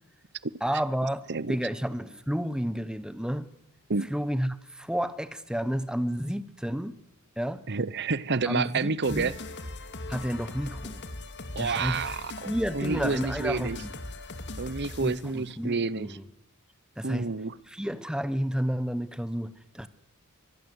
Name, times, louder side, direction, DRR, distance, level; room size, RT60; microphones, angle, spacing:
voice 1, 0.6-1.2 1.5-3.5 4.1-7.0 7.4-7.6 8.5-9.3 10.1-11.0 11.6-12.0 12.5-13.9 15.0-16.2 17.0-17.3 17.7-19.9, equal, 5° right, 1.1 m, -31 dB
voice 2, 7.7-9.3 11.5-13.8 14.6-16.2 17.0-17.6, right 4 dB, 50° right, 0.9 m, -29 dB
sound 1, 9.0-15.3, left 2 dB, 55° left, 2.5 m, -39 dB
24.5 x 20.5 x 8.1 m
head